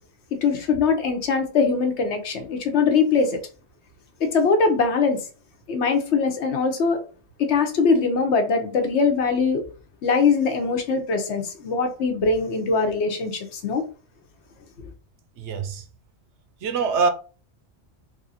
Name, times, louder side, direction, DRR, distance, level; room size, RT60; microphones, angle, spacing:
voice 1, 0.4-3.4 4.2-5.2 5.7-7.0 7.4-9.6 10.0-13.8, left 4 dB, 65° left, 1.0 m, -22 dB
voice 2, 15.4-15.8 16.6-17.1, right 5 dB, 70° right, 0.8 m, -23 dB
3.5 x 2.5 x 4.0 m
omnidirectional pair, 1.3 m